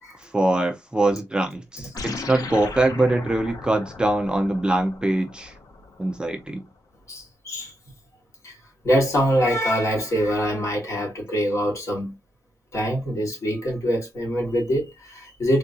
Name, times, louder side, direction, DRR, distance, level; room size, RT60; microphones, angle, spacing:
voice 1, 0.3-5.5 6.0-6.6, right 2 dB, 15° right, 0.5 m, -23 dB
sound 1, 2.0-6.6, left 4 dB, 70° left, 0.7 m, -37 dB
voice 2, 7.1-7.7 8.4-8.5 8.8-12.1 12.7-15.6, equal, 50° left, 1.8 m, -24 dB
3.6 x 2.7 x 2.4 m
wide cardioid pair, 160°, 7 cm